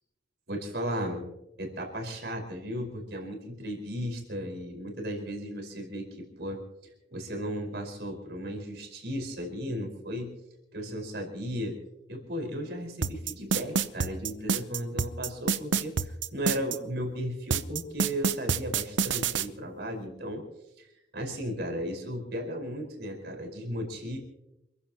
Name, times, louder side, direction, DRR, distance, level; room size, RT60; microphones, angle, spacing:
voice 1, 0.5-10.3 10.7-11.8 12.1-20.4 20.8-24.2, equal, 60° right, 2 dB, 5.0 m, -35 dB
sound 1, 13.0-16.8 17.5-19.5, right 6 dB, 80° right, 0.8 m, -27 dB
28.0 x 15.5 x 3.0 m, 0.89 s
head